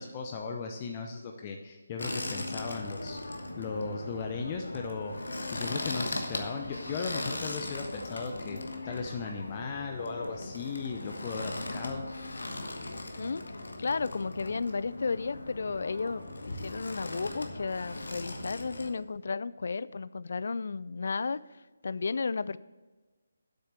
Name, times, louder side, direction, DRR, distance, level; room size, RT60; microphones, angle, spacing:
voice 1, 0.0-3.2 3.6-5.1 5.5-12.0, left 5 dB, 30° left, 3 dB, 0.7 m, -37 dB
sound 1, 2.0-18.9, left 2 dB, 75° left, 1.3 m, -38 dB
voice 2, 13.8-21.4 21.8-22.6, left 4 dB, 60° left, 17 dB, 0.3 m, -33 dB
8.1 x 6.5 x 6.6 m, 1.3 s
figure-of-eight pair, 150°, 0 cm